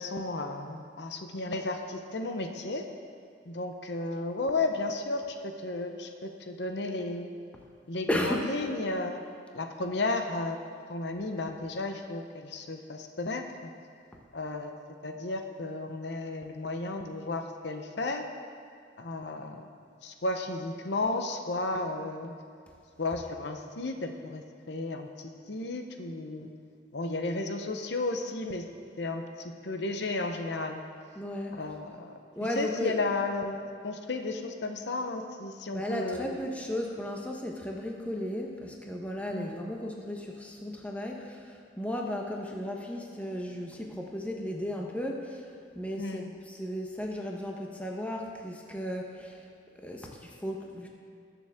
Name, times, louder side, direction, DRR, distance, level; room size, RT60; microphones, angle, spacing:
voice 1, 0.0-2.9 3.5-7.3 7.9-9.2 9.5-10.6 10.9-13.7 14.3-14.8 15.0-18.3 19.0-19.7 20.0-22.3 23.0-26.5 26.9-28.7 29.0-30.8 31.5-32.2 32.6-36.4 39.3-39.7 46.0-46.3, left 2 dB, 75° left, 5 dB, 0.8 m, -33 dB
voice 2, 8.1-8.5 31.1-31.6 32.4-33.0 35.7-45.5 45.7-49.5 49.8-50.9, left 1 dB, 10° left, 0 dB, 1.0 m, -35 dB
20.0 x 7.0 x 3.6 m, 2.3 s
head